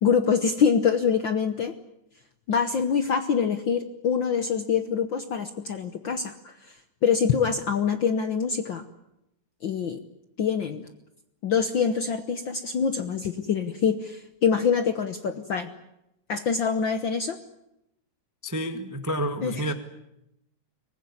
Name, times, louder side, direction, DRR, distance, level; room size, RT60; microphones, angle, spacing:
voice 1, 0.0-1.7 2.5-8.8 9.6-10.0 10.4-10.9 11.4-15.7 16.3-17.4 19.4-19.5, left 6 dB, 65° left, 9 dB, 1.2 m, -25 dB
voice 2, 18.4-19.7, equal, 25° right, 7 dB, 0.4 m, -29 dB
24.0 x 20.0 x 9.7 m, 0.84 s
omnidirectional pair, 3.5 m